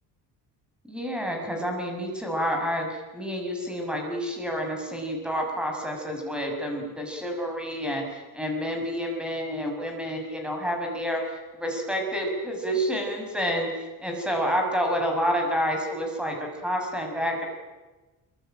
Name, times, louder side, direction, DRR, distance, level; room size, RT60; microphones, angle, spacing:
voice 1, 0.9-17.5, equal, ahead, 2 dB, 5.9 m, -29 dB
26.0 x 24.0 x 9.0 m, 1.2 s
cardioid pair, 175°, 42 cm